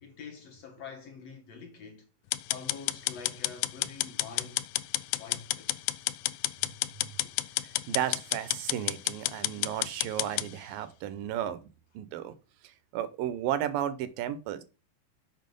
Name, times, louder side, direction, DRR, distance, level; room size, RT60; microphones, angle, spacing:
voice 1, 0.0-2.1 2.5-4.6 5.1-5.8, left 5 dB, 60° left, 1.9 m, -46 dB
sound 1, 2.3-10.5, left 17 dB, 90° left, 2.4 m, -30 dB
voice 2, 7.9-11.6 11.9-12.3 12.6-14.6, right 11 dB, 80° right, 2.5 m, -33 dB
7.7 x 6.0 x 5.3 m
omnidirectional pair, 4.2 m